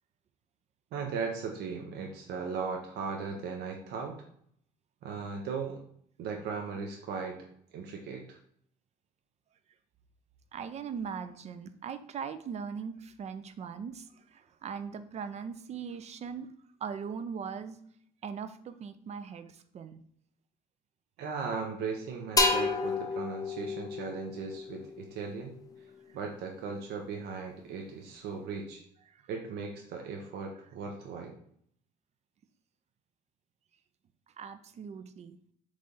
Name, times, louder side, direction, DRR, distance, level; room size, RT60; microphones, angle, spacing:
voice 1, 0.9-4.2 5.0-5.8 6.2-7.5 7.7-8.4 21.2-25.5 26.1-28.8 29.3-31.3, right 5 dB, 75° right, 1 dB, 0.7 m, -37 dB
voice 2, 10.5-16.5 16.8-17.8 18.2-20.0 29.1-29.2 34.4-35.4, right 6 dB, 40° right, 11 dB, 0.4 m, -40 dB
sound 1, 22.4-26.0, left 3 dB, 20° left, 0.6 m, -31 dB
4.0 x 3.2 x 3.7 m, 0.66 s
cardioid pair, 110°, 17 cm